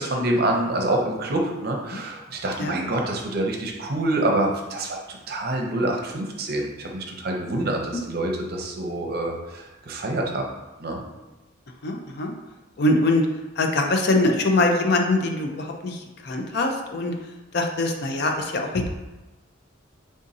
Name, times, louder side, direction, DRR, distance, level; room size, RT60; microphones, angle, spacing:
voice 1, 0.0-10.5 10.8-11.0, right 1 dB, 50° right, 1 dB, 0.6 m, -26 dB
voice 2, 11.8-12.3 12.8-13.3 13.6-17.1 17.5-18.9, left 2 dB, 55° left, 3 dB, 0.5 m, -23 dB
3.6 x 2.6 x 4.0 m, 1.1 s
head